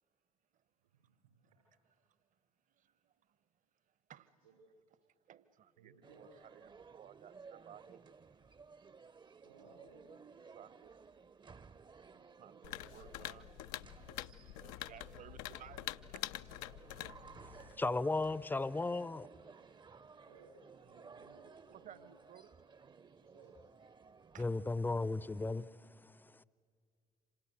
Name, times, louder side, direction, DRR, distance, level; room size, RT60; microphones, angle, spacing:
voice 1, 0.8-1.3 4.4-4.7 5.8-6.3 9.4-10.1 20.3-22.2 23.2-23.6, right 4 dB, 80° right, 5.0 m, -62 dB
voice 2, 2.8-3.4 4.1-4.3 5.3-8.0 9.6-9.7 10.5-10.9 12.1-13.5 14.3-15.8 16.1-16.2 19.9-20.0 21.7-22.5 24.3-24.5, right 10 dB, 45° right, 1.1 m, -57 dB
sound 1, 6.0-25.6, right 5 dB, 25° right, 0.8 m, -58 dB
sound 2, 12.6-17.8, left 14 dB, 65° left, 0.6 m, -46 dB
voice 3, 17.4-19.3 24.4-26.4, left 3 dB, 10° left, 0.7 m, -36 dB
27.5 x 26.5 x 7.9 m
figure-of-eight pair, 50°, 18 cm